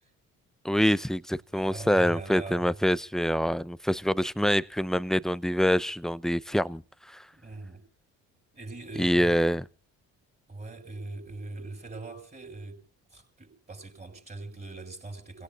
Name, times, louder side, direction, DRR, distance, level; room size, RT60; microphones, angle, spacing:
voice 1, 0.6-7.3 9.0-9.6, equal, ahead, 0.7 m, -26 dB
voice 2, 1.5-2.8 7.3-7.9 8.5-9.5 10.5-12.8 13.1-15.4, right 2 dB, 25° right, 6.9 m, -41 dB
29.5 x 17.0 x 2.5 m
supercardioid pair, 55°, 37 cm